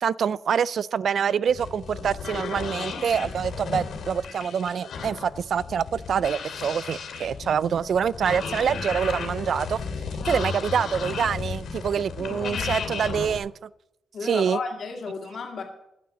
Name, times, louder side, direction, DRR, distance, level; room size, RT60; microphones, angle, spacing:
voice 1, 0.0-9.8 10.3-13.7 14.2-14.6, right 7 dB, 55° right, 21 dB, 0.3 m, -26 dB
sound 1, 1.5-13.4, left 5 dB, 70° left, 2.5 m, -34 dB
voice 2, 10.2-10.6 12.3-12.9 14.1-15.6, left 4 dB, 50° left, 1 dB, 2.1 m, -34 dB
10.5 x 9.3 x 6.9 m, 0.85 s
wide cardioid pair, 145°, 0 cm